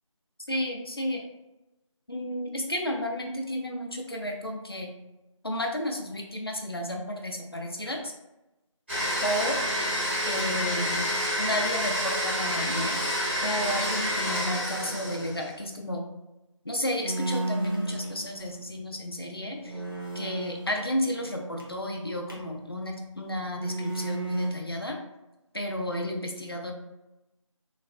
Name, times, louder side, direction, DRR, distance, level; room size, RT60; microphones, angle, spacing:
voice 1, 0.5-1.3 2.1-4.9 5.4-8.1 9.2-9.6 10.3-11.1 11.4-13.0 13.4-16.0 16.6-19.8 20.1-25.0 25.5-26.7, left 1 dB, 45° left, 1 dB, 0.4 m, -32 dB
Domestic sounds home sounds, 8.9-15.5, equal, 20° right, 1.1 m, -28 dB
sound 1, 17.0-18.7 19.1-19.2 19.5-22.6 23.4-24.5, right 2 dB, 45° right, 0.6 m, -34 dB
3.1 x 2.4 x 2.4 m, 0.97 s
figure-of-eight pair, 170°, 17 cm